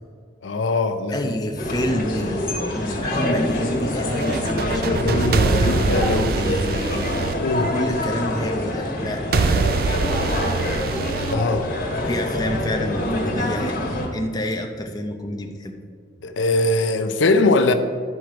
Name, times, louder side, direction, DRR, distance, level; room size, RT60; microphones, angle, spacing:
voice 1, 0.4-1.3 4.9-6.5 7.4-7.7 9.3-9.4 11.3-11.7 16.2-17.7, left 2 dB, 85° left, 0.6 m, -21 dB
voice 2, 1.1-5.1 5.6-7.2 7.7-10.3 12.1-15.8, left 1 dB, 20° left, 0.7 m, -28 dB
sound 1, 1.6-14.1, left 1 dB, 45° left, 1.6 m, -25 dB
sound 2, 4.0-8.2 9.3-12.2, right 5 dB, 50° right, 0.3 m, -24 dB
11.5 x 4.5 x 5.0 m
head